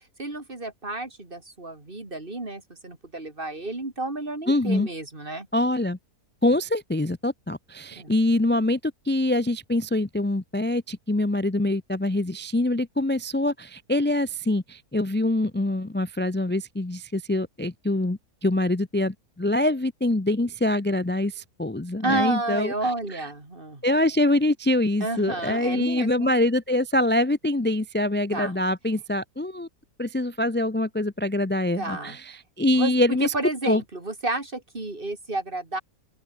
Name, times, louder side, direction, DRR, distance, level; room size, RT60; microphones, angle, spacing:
voice 1, 0.2-5.5 7.9-8.1 22.0-23.8 25.0-26.3 28.3-28.5 31.8-32.2 32.7-35.8, right 2 dB, 35° right, 3.8 m, -31 dB
voice 2, 4.5-4.9 5.5-6.0 6.4-22.7 23.8-29.7 30.0-33.3 33.6-33.8, left 1 dB, 15° left, 0.4 m, -24 dB
open air
omnidirectional pair, 1.7 m